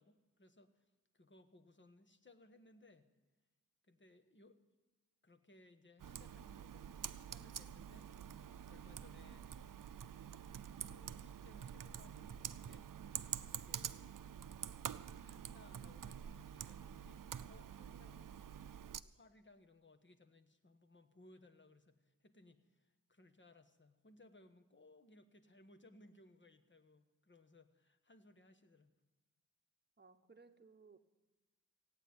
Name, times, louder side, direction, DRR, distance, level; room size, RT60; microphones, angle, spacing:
voice 1, 0.0-3.1 3.8-4.6 5.2-9.6 10.8-12.9 13.5-14.1 15.2-18.4 19.0-28.9, left 2 dB, 35° left, 8 dB, 1.4 m, -65 dB
Computer keyboard, 6.0-19.0, right 8 dB, 75° right, 0.6 m, -47 dB
voice 2, 30.0-31.0, right 4 dB, 30° right, 9 dB, 1.1 m, -62 dB
16.5 x 9.1 x 9.5 m, 1.1 s
wide cardioid pair, 70°, 33 cm